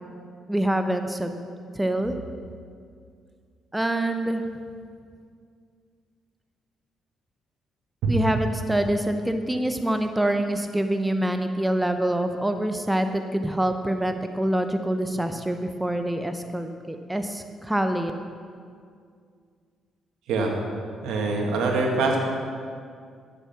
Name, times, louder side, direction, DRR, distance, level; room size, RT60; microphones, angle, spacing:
voice 1, 0.5-1.4 1.7-2.1 3.7-4.5 8.1-18.1, right 1 dB, 10° right, 6 dB, 0.8 m, -25 dB
voice 2, 21.0-22.2, right 3 dB, 85° right, 1 dB, 1.9 m, -23 dB
13.0 x 7.5 x 5.9 m, 2.2 s
cardioid pair, 90°, 0 cm